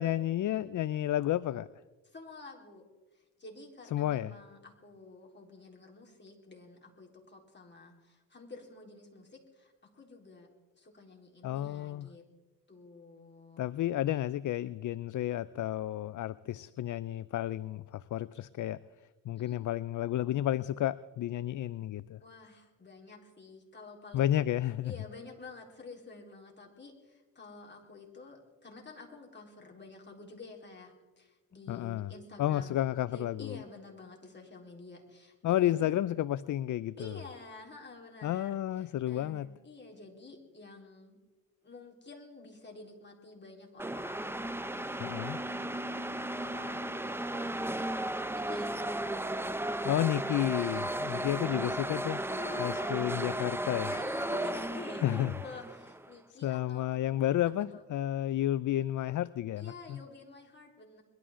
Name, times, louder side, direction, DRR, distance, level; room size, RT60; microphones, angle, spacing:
voice 1, 0.0-1.7 3.9-4.3 11.4-12.1 13.6-18.8 19.3-22.2 24.1-24.9 31.7-32.1 32.4-33.6 35.4-37.2 38.2-39.5 45.0-45.4 49.8-52.2 52.6-53.9 55.0-55.3 56.4-60.0, left 12 dB, 60° left, 0.5 m, -31 dB
voice 2, 2.0-2.9 3.4-10.5 10.8-12.2 12.7-13.7 19.4-19.6 22.2-24.4 24.8-32.8 33.1-35.9 37.0-41.2 41.6-44.9 45.4-48.8 50.6-51.7 52.3-53.0 53.8-57.9 59.6-61.0, left 3 dB, 30° left, 3.9 m, -50 dB
sound 1, 43.8-56.1, right 1 dB, 5° right, 0.7 m, -35 dB
22.0 x 12.5 x 3.7 m
cardioid pair, 60°, 35 cm